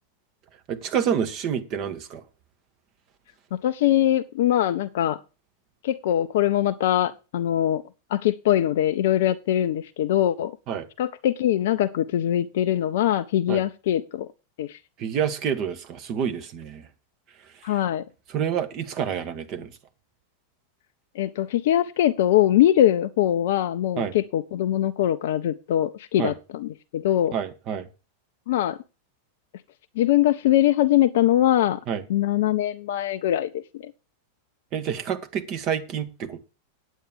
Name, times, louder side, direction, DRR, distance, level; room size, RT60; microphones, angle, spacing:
voice 1, 0.7-2.2 10.7-10.9 13.5-13.6 15.0-16.8 17.7-17.8 18.3-19.7 24.0-24.1 26.2-26.3 27.3-27.8 31.9-32.0 34.7-36.4, right 8 dB, 35° right, 1.4 m, -28 dB
voice 2, 3.5-5.2 5.8-7.8 8.1-10.6 11.0-14.3 14.6-14.8 17.6-18.0 21.2-27.3 28.5-28.8 30.0-31.8 32.1-33.9, left 12 dB, 55° left, 0.5 m, -22 dB
9.2 x 8.1 x 6.3 m
figure-of-eight pair, 90°, 0 cm